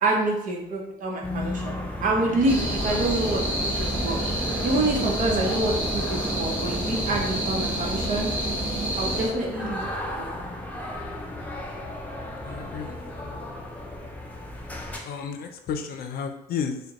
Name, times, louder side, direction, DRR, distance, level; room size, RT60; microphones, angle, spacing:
voice 1, 0.0-4.2 4.6-8.3 9.0-10.3, right 2 dB, 55° right, 0 dB, 0.9 m, -27 dB
sound 1, 1.2-15.0, left 1 dB, 10° left, 0.5 m, -36 dB
sound 2, 2.5-9.3, right 1 dB, 10° right, 1.1 m, -28 dB
voice 2, 12.4-12.9 15.0-16.8, left 6 dB, 70° left, 6 dB, 0.5 m, -32 dB
5.0 x 2.2 x 2.9 m, 0.87 s
cardioid pair, 160°, 16 cm